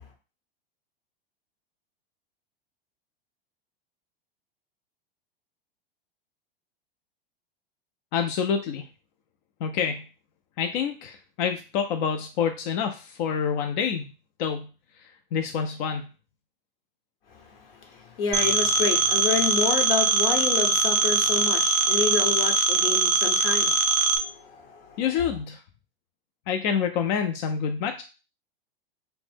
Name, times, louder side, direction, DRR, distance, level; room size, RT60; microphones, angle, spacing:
voice 1, 8.1-8.9 9.6-10.0 10.6-14.1 14.4-14.7 15.0-16.1 25.0-25.6 26.5-28.0, left 7 dB, 55° left, 5 dB, 0.4 m, -27 dB
voice 2, 17.3-25.0, left 5 dB, 75° left, 3 dB, 0.9 m, -29 dB
Telephone, 18.3-24.2, right 4 dB, 40° right, 0.4 m, -22 dB
2.5 x 2.1 x 3.3 m, 0.32 s
hypercardioid pair, 100°, 29 cm